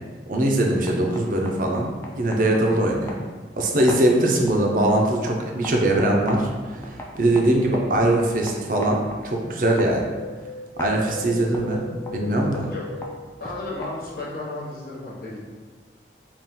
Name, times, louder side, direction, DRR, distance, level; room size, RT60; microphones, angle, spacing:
voice 1, 0.3-1.9 2.2-3.2 3.6-10.1 10.8-11.8 12.1-12.7, right 1 dB, 50° right, 0 dB, 0.5 m, -21 dB
sound 1, 0.6-14.3, equal, 15° left, 0.3 m, -40 dB
Wind, 9.8-14.1 14.4-14.5, left 3 dB, 85° left, 0.4 m, -38 dB
voice 2, 12.7-13.0 13.4-15.4, left 2 dB, 55° left, -5 dB, 0.9 m, -33 dB
3.6 x 2.3 x 4.1 m, 1.4 s
head